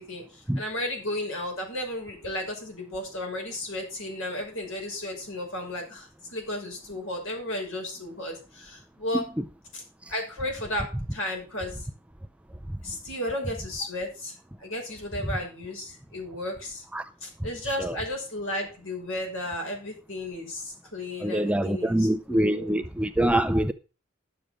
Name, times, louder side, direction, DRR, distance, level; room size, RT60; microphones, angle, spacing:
voice 1, 0.0-9.2 9.7-9.8 10.1-11.9 12.8-14.3 14.6-16.8 17.2-22.7, left 1 dB, 70° left, 5.9 m, -34 dB
voice 2, 17.6-18.0 21.2-23.7, right 1 dB, 5° right, 0.4 m, -25 dB
11.5 x 7.1 x 6.3 m
head